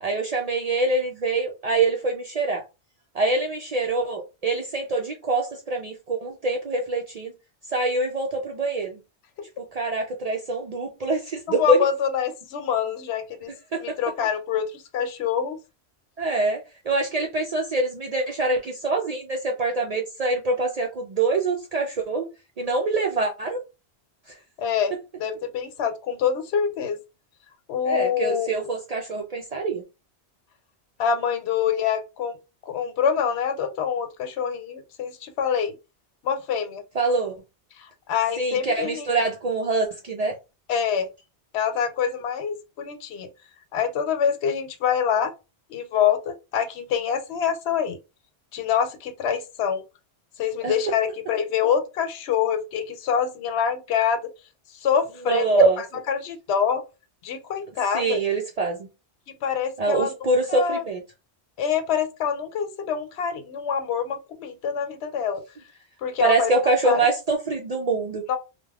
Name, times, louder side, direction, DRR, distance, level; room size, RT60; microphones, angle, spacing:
voice 1, 0.0-2.6 3.1-7.3 7.7-9.0 9.6-11.9 13.7-14.0 16.2-22.3 22.6-23.6 24.3-24.4 27.8-29.8 36.9-37.4 38.4-40.4 50.6-50.7 55.3-55.8 57.9-58.9 59.8-61.0 66.2-68.2, right 3 dB, 55° right, 0.4 m, -24 dB
voice 2, 11.6-13.5 13.8-15.6 24.6-24.9 25.2-27.0 27.7-28.5 31.0-32.3 32.7-35.7 36.2-36.8 38.1-39.1 40.7-41.1 41.5-43.3 43.7-45.3 45.7-48.0 48.5-49.8 50.4-54.2 54.8-55.5 56.1-56.8 57.2-58.2 59.4-60.1 60.5-60.8 61.6-65.4 66.0-66.5 66.8-67.0 68.3-68.4, left 7 dB, 75° left, 0.8 m, -25 dB
3.2 x 2.2 x 2.3 m
omnidirectional pair, 1.1 m